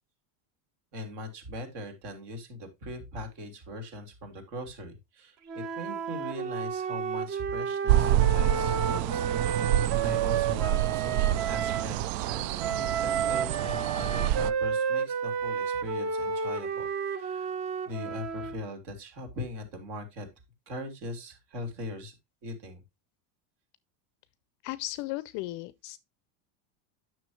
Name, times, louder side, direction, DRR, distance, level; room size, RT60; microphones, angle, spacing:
voice 1, 0.9-9.7 10.0-17.6 17.8-20.3 20.7-22.1 22.4-22.8, left 1 dB, 55° right, 3.4 m, -40 dB
Wind instrument woodwind instrument, 5.5-11.9 12.6-18.6, right 6 dB, 35° right, 1.0 m, -31 dB
sound 1, 7.9-14.5, right 13 dB, 75° right, 0.6 m, -27 dB
voice 2, 24.6-26.0, left 18 dB, 40° left, 0.4 m, -35 dB
9.9 x 6.3 x 3.1 m
cardioid pair, 175°, 48 cm